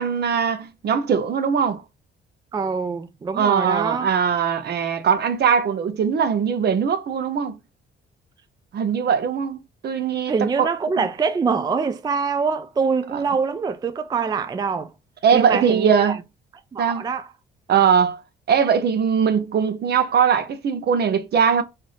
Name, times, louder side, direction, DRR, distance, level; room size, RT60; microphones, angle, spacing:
voice 1, 0.0-1.8 3.3-7.6 8.7-9.6 9.8-10.7 11.0-11.1 15.2-16.2 16.8-17.1 17.7-18.2 18.5-21.6, right 7 dB, 55° right, 0.7 m, -20 dB
voice 2, 2.5-4.1 10.3-14.9 15.3-16.2 16.7-17.3, right 5 dB, 20° right, 0.3 m, -24 dB
3.9 x 2.6 x 3.1 m
cardioid pair, 90°, 20 cm